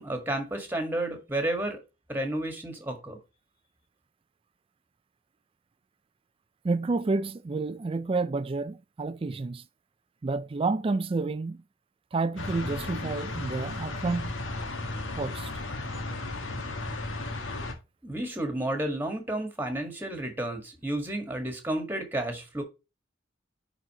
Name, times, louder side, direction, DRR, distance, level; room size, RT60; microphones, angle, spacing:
voice 1, 0.0-1.8 2.1-3.2 18.0-22.6, right 1 dB, 10° right, 1.7 m, -31 dB
voice 2, 6.6-9.6 10.2-11.6 12.1-14.3 15.1-15.5, right 3 dB, 30° right, 0.4 m, -29 dB
sound 1, 12.4-17.7, left 2 dB, 85° left, 1.5 m, -34 dB
10.5 x 4.1 x 3.0 m
head